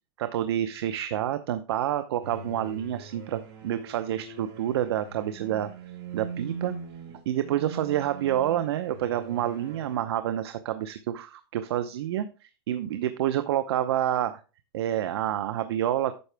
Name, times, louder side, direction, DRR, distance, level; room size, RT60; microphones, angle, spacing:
voice 1, 0.2-5.7 6.1-6.7 7.3-12.3 12.7-14.4 14.7-16.2, right 11 dB, 80° right, 10 dB, 0.8 m, -28 dB
sound 1, 2.2-10.0, right 4 dB, 60° right, 3.9 m, -42 dB
9.6 x 6.6 x 3.4 m, 0.33 s
supercardioid pair, 145°, 13 cm